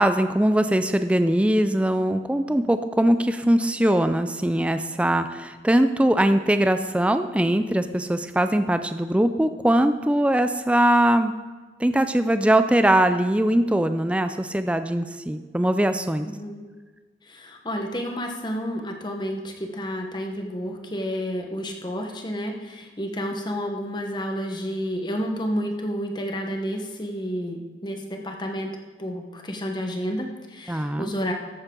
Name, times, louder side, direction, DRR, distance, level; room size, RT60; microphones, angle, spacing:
voice 1, 0.0-11.3 11.8-16.3 30.7-31.1, right 1 dB, 5° right, 9 dB, 0.3 m, -21 dB
voice 2, 16.3-16.7 17.2-31.3, equal, 25° left, 3 dB, 1.0 m, -30 dB
14.5 x 7.3 x 3.8 m, 1.3 s
head